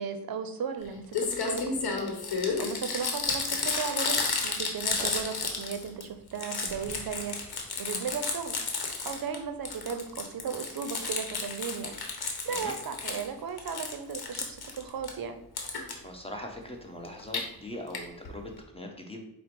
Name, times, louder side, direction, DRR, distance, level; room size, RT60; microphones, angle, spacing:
voice 1, 0.0-2.0 2.2-8.6 9.0-11.9 12.4-15.4, right 6 dB, 65° right, 8 dB, 0.5 m, -36 dB
Crumpling crinkling, 0.8-0.9 1.1-6.0 6.3-9.4 9.7-13.3 13.6-15.1 15.6-15.9 17.1-17.4 17.9-18.0 18.3-18.4 18.6-18.7, left 4 dB, 75° left, 0.9 m, -32 dB
voice 2, 16.0-19.2, left 1 dB, 15° left, 2 dB, 0.9 m, -41 dB
4.8 x 2.1 x 4.5 m, 0.88 s
cardioid pair, 55°, 39 cm